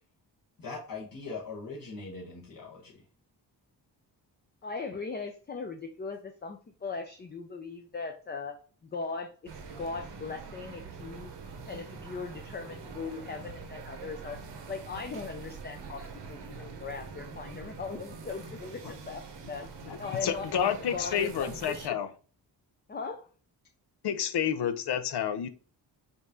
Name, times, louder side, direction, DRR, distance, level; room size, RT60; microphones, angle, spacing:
voice 1, 0.6-3.0, left 3 dB, 55° left, 1.3 m, -41 dB
voice 2, 4.6-8.6 8.8-11.3 11.7-14.4 14.7-16.0 16.3-19.7 20.0-22.0 22.9-23.3, left 4 dB, 25° left, 0.5 m, -39 dB
sound 1, 9.5-21.9, right 5 dB, 80° right, 1.1 m, -44 dB
voice 3, 19.8-22.1 24.0-25.5, left 8 dB, 70° left, 0.6 m, -30 dB
5.2 x 2.6 x 3.6 m
wide cardioid pair, 125°, 41 cm